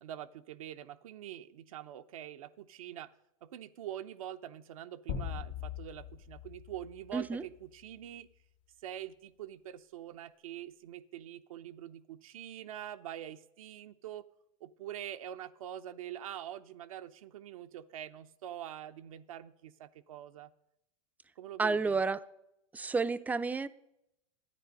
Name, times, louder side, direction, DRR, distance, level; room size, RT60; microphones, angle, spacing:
voice 1, 0.0-3.1 3.4-8.3 8.8-14.2 14.6-20.5 21.4-22.0, right 11 dB, 80° right, 0.6 m, -45 dB
sound 1, 5.1-7.9, left 9 dB, 70° left, 1.8 m, -42 dB
voice 2, 7.1-7.4 21.6-22.2 22.7-23.7, right 4 dB, 10° right, 0.4 m, -30 dB
12.0 x 9.5 x 5.2 m
hypercardioid pair, 110°, 17 cm